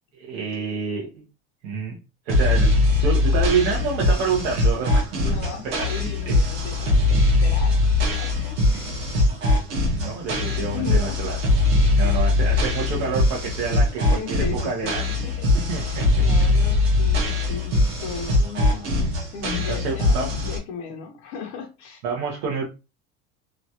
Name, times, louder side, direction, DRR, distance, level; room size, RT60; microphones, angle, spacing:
voice 1, 0.2-1.2 1.6-2.0 2.2-5.4 5.6-5.9 6.3-6.4 9.7-11.4 11.9-15.1 15.7-16.1 19.6-20.5 22.0-22.6, right 5 dB, 70° right, 0.9 m, -28 dB
sound 1, 2.3-20.6, left 2 dB, 50° right, 1.1 m, -21 dB
voice 2, 5.2-8.9 10.7-11.2 12.0-12.3 14.0-15.5 15.7-22.0, left 6 dB, 50° left, 0.7 m, -36 dB
3.0 x 2.3 x 2.7 m
cardioid pair, 160°, 32 cm